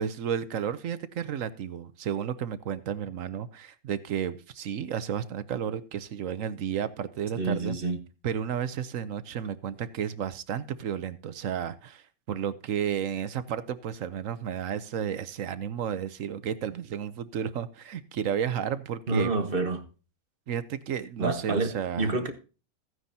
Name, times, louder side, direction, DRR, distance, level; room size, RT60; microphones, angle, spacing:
voice 1, 0.0-7.7 8.2-19.3 20.5-22.2, right 8 dB, 65° right, 1.1 m, -32 dB
voice 2, 7.4-8.0 19.1-19.8 21.2-22.3, right 3 dB, 40° right, 1.4 m, -28 dB
14.5 x 9.5 x 2.7 m
omnidirectional pair, 1.5 m